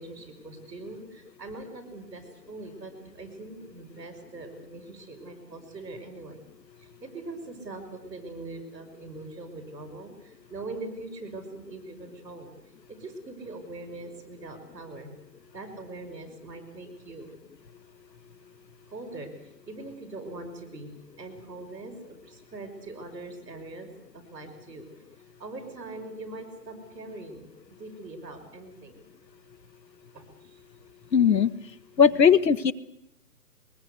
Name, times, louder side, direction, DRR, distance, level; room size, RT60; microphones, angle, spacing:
voice 1, 0.0-6.4 6.8-12.5 12.9-15.1 15.5-17.3 18.9-24.9 25.4-29.0 30.1-30.7, right 2 dB, 5° right, -9 dB, 4.5 m, -42 dB
voice 2, 31.1-31.5 32.0-32.7, left 7 dB, 85° left, 15 dB, 1.4 m, -18 dB
22.5 x 22.0 x 8.1 m, 0.78 s
hypercardioid pair, 175°, 49 cm